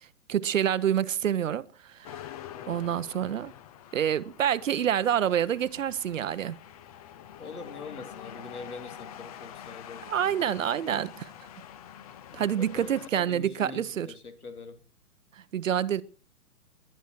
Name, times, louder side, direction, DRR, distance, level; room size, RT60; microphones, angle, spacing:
voice 1, 0.3-1.6 2.7-3.5 3.9-6.6 10.1-11.3 12.3-14.1 15.5-16.0, right 9 dB, 55° right, 0.9 m, -27 dB
sound 1, 2.0-13.1, left 10 dB, 25° left, 0.7 m, -46 dB
voice 2, 2.6-2.9 7.4-10.4 12.3-14.8, left 4 dB, 70° left, 3.6 m, -44 dB
20.5 x 10.0 x 4.6 m
figure-of-eight pair, 120°, 45 cm